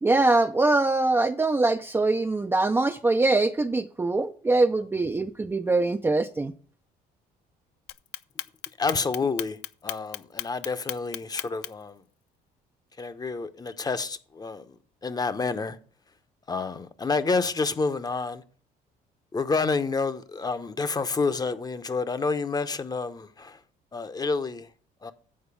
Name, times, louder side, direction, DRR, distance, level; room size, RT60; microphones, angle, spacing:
voice 1, 0.0-6.5, right 2 dB, 15° right, 0.4 m, -23 dB
Clock, 7.9-11.9, left 15 dB, 80° left, 0.5 m, -34 dB
voice 2, 8.8-9.6 9.8-12.0 13.0-14.6 15.0-15.8 16.5-18.4 19.3-23.6 23.9-24.7 25.0-25.1, left 4 dB, 25° left, 0.8 m, -29 dB
8.7 x 4.4 x 7.1 m
cardioid pair, 110°, 17 cm